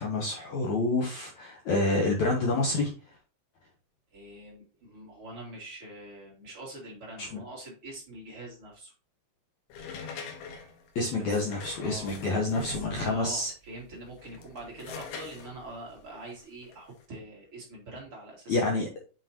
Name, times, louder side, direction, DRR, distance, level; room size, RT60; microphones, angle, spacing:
voice 1, 0.0-2.9 7.2-7.3 11.0-13.5 18.5-19.0, left 2 dB, 65° left, 1 dB, 1.9 m, -28 dB
voice 2, 4.1-8.9 11.2-11.5 11.8-12.2 12.7-18.6, right 2 dB, 40° right, -2 dB, 2.9 m, -44 dB
sound 1, 9.7-13.4 14.1-17.0, left 5 dB, 85° left, 3.3 m, -43 dB
7.6 x 5.6 x 2.9 m, 0.35 s
omnidirectional pair, 4.5 m